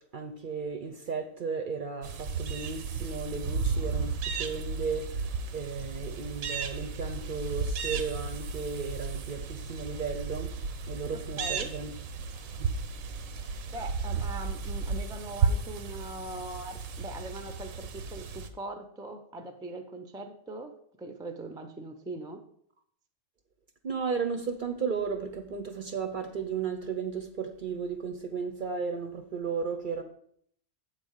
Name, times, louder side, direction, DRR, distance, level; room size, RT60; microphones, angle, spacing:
voice 1, 0.1-5.3 5.5-10.5 10.9-11.9 12.6-12.7 23.8-30.0, right 5 dB, 50° right, 6 dB, 0.7 m, -34 dB
sound 1, 2.0-18.5, right 4 dB, 90° right, 1.2 m, -34 dB
voice 2, 11.1-11.7 13.7-20.7 21.0-22.4, right 2 dB, 5° right, 6 dB, 0.4 m, -41 dB
7.7 x 4.1 x 6.4 m, 0.65 s
omnidirectional pair, 1.4 m